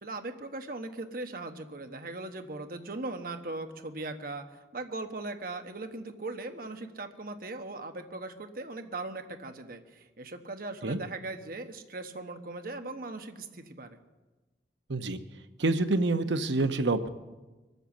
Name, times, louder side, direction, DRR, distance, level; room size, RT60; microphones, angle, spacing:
voice 1, 0.0-14.0, right 2 dB, 55° right, 7 dB, 1.3 m, -39 dB
voice 2, 15.6-17.1, right 2 dB, 85° right, 9 dB, 1.0 m, -27 dB
23.5 x 7.9 x 7.3 m, 1.2 s
head